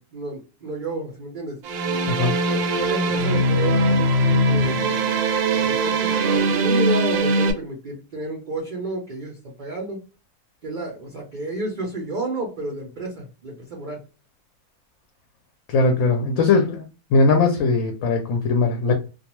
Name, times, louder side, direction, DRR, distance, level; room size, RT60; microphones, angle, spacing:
voice 1, 0.0-1.6 2.5-4.8 5.5-10.0 10.6-14.0, right 2 dB, 55° right, -1 dB, 0.5 m, -31 dB
sound 1, 1.6-7.5, right 1 dB, 80° right, 1.1 m, -21 dB
voice 2, 2.1-2.4 15.7-18.9, left 3 dB, 70° left, 4 dB, 0.8 m, -20 dB
2.3 x 2.2 x 2.9 m, 0.32 s
omnidirectional pair, 1.6 m